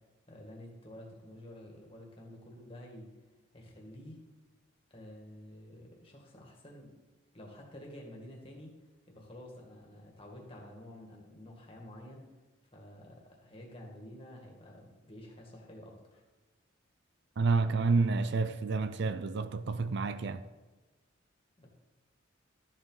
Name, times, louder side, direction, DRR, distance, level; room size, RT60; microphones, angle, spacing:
voice 1, 0.3-3.1 3.5-4.2 4.9-6.9 7.3-8.7 9.1-12.2 12.7-16.2 21.6-21.7, left 1 dB, 25° left, 1.9 m, -50 dB
voice 2, 17.4-20.4, right 4 dB, 55° right, 0.4 m, -29 dB
12.5 x 7.5 x 4.0 m
head